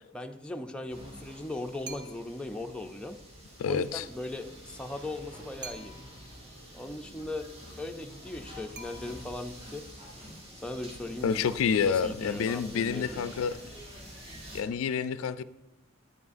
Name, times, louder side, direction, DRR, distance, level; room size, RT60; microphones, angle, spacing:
voice 1, 0.1-3.2 3.7-5.9 6.7-7.5 7.8-9.9 10.6-11.4 11.8-13.4, left 2 dB, 5° left, 4 dB, 0.4 m, -38 dB
sound 1, 0.9-14.6, equal, 30° right, 2.1 m, -48 dB
sound 2, 1.8-2.5 5.6-6.3 8.7-9.5, right 4 dB, 55° right, 0.8 m, -46 dB
sound 3, 3.0-10.3, equal, 75° right, 2.0 m, -54 dB
voice 2, 3.6-4.1 11.2-13.6 14.5-15.4, left 6 dB, 80° left, 15 dB, 0.3 m, -28 dB
9.5 x 8.3 x 2.5 m, 0.94 s
head